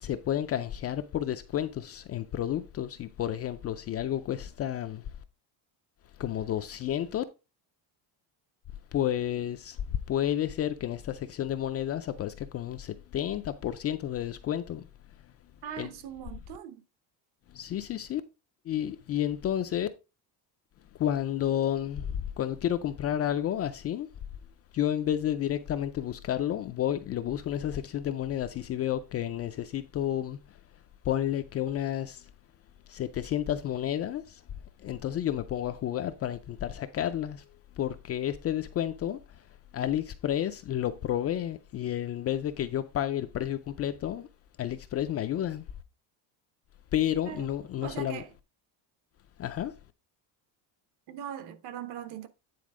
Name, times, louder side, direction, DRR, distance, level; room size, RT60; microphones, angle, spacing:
voice 1, 0.0-5.1 6.2-7.2 8.9-14.8 15.8-15.9 17.5-18.2 18.7-19.9 21.0-24.1 24.7-30.6 31.0-32.3 32.9-34.4 34.8-37.4 37.8-39.4 39.7-44.3 44.6-45.6 46.9-48.2 49.4-49.8, left 11 dB, 35° left, 0.4 m, -31 dB
voice 2, 15.6-16.8 47.2-47.5 47.8-48.3 51.1-52.3, right 9 dB, 55° right, 1.0 m, -40 dB
9.4 x 4.2 x 4.8 m
cardioid pair, 175°, 46 cm